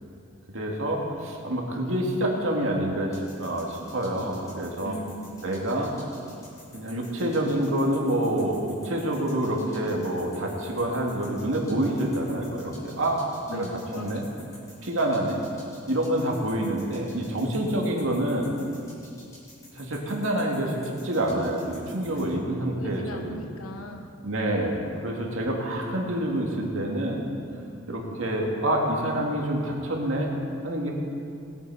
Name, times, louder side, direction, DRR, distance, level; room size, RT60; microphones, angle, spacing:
voice 1, 0.5-5.0 5.4-5.9 6.7-13.2 13.5-13.7 13.9-14.2 14.8-15.4 15.9-18.5 19.7-23.4 24.2-27.3 27.9-30.3 30.6-30.9, right 1 dB, 70° right, -1 dB, 2.2 m, -27 dB
sound 1, 3.1-22.3, left 1 dB, 15° left, 3.0 m, -51 dB
voice 2, 4.8-5.4 13.5-14.4 22.4-24.1, equal, 80° left, 3 dB, 1.0 m, -39 dB
19.5 x 9.1 x 4.7 m, 2.5 s
head